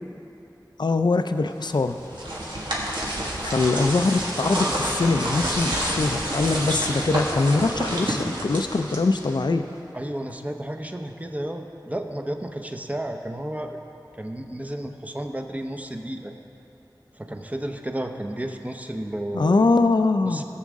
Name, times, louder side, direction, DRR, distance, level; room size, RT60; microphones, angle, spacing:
voice 1, 0.8-2.0 3.4-9.7 19.3-20.4, left 3 dB, 70° left, 8 dB, 0.4 m, -22 dB
sound 1, 1.7-9.5, right 1 dB, 85° right, 1.7 m, -28 dB
voice 2, 9.9-13.8 14.1-16.3 17.2-19.7 20.2-20.4, right 1 dB, 20° right, 4 dB, 0.8 m, -32 dB
17.5 x 7.4 x 3.6 m, 2.9 s
wide cardioid pair, 50°, 8 cm